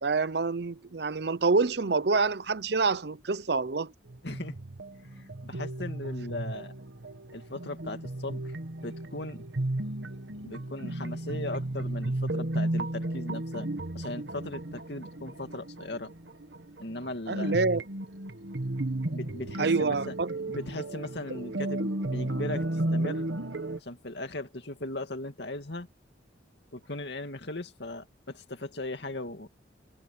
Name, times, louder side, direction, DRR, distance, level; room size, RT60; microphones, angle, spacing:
voice 1, 0.0-3.9 17.3-17.8 19.6-20.3, right 4 dB, 65° right, 0.7 m, -27 dB
sound 1, 4.1-23.8, right 1 dB, 80° right, 1.6 m, -34 dB
voice 2, 4.2-4.5 5.1-6.7 7.3-8.5 8.8-9.4 10.4-13.7 13.9-16.1 16.8-17.6 19.1-20.1 20.5-23.3 23.8-25.9 26.7-29.5, left 2 dB, 65° left, 2.4 m, -38 dB
head